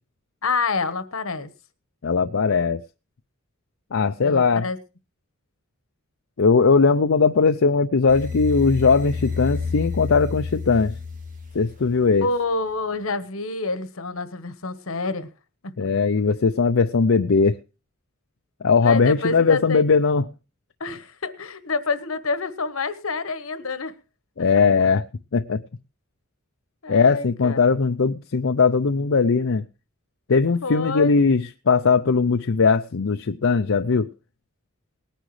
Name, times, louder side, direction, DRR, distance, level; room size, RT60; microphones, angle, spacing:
voice 1, 0.4-1.5 4.2-4.8 12.2-15.3 15.6-15.9 18.8-19.9 20.8-23.9 26.8-27.6 30.6-31.2, left 3 dB, 90° left, 1.3 m, -27 dB
voice 2, 2.0-2.8 3.9-4.7 6.4-10.9 11.5-12.3 15.8-17.6 18.6-20.2 24.4-25.0 25.3-25.6 26.9-29.6 30.3-34.1, left 4 dB, 70° left, 0.6 m, -19 dB
sound 1, 8.1-12.2, left 5 dB, 40° right, 2.4 m, -30 dB
19.5 x 10.0 x 3.2 m
head